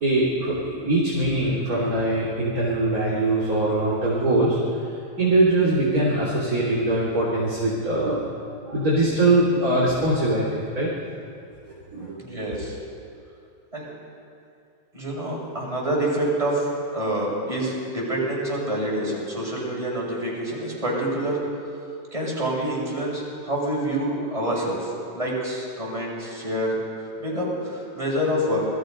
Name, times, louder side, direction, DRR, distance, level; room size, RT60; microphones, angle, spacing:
voice 1, 0.0-4.6 5.2-8.3 8.7-10.9 11.9-12.2, right 2 dB, 30° right, -6 dB, 3.4 m, -22 dB
voice 2, 12.2-12.8 13.7-13.8 14.9-21.4 22.1-28.7, right 1 dB, 10° right, -5 dB, 6.5 m, -27 dB
28.0 x 20.5 x 5.4 m, 2.6 s
omnidirectional pair, 3.4 m